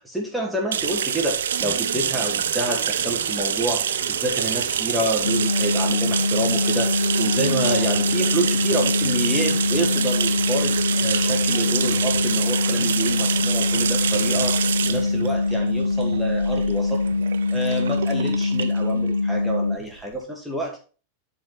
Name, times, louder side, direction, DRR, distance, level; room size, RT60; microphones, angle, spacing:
voice 1, 0.0-17.0 17.5-20.8, right 1 dB, ahead, -1 dB, 2.3 m, -28 dB
sound 1, 0.7-20.1, right 8 dB, 65° right, 0.6 m, -26 dB
psy trance, 1.5-14.6, right 9 dB, 45° right, 1.6 m, -42 dB
sound 2, 5.2-19.8, left 3 dB, 80° left, 0.4 m, -23 dB
11.5 x 4.5 x 4.1 m, 0.36 s
figure-of-eight pair, 90°, 0 cm